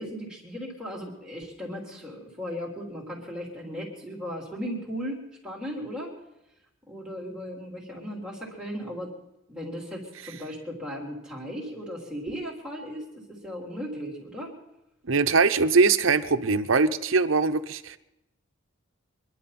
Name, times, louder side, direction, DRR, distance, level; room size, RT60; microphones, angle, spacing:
voice 1, 0.0-6.1 6.9-9.1 9.5-14.5, equal, 5° right, -4 dB, 3.8 m, -36 dB
voice 2, 15.1-18.0, right 4 dB, 75° right, 9 dB, 0.8 m, -22 dB
26.0 x 11.5 x 4.3 m, 0.89 s
head